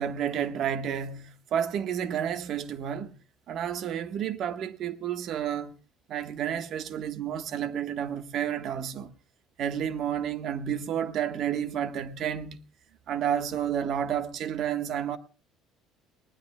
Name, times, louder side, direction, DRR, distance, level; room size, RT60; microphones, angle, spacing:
voice 1, 0.0-3.1 3.5-5.7 6.1-9.1 9.6-12.6 13.1-15.2, right 9 dB, 55° right, 1.2 m, -30 dB
19.5 x 19.0 x 2.2 m
cardioid pair, 125°, 0 cm